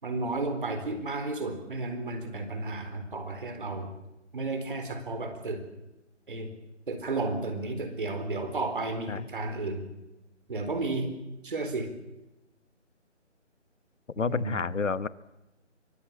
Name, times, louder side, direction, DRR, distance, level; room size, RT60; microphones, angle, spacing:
voice 1, 0.0-3.9 4.3-5.6 6.3-6.5 6.9-9.8 10.5-11.1 11.4-11.9 14.2-14.6, right 2 dB, 45° right, 8 dB, 4.0 m, -32 dB
voice 2, 14.2-15.1, left 5 dB, 80° left, 16 dB, 1.2 m, -29 dB
23.5 x 18.5 x 8.7 m, 0.94 s
hypercardioid pair, 175°, 37 cm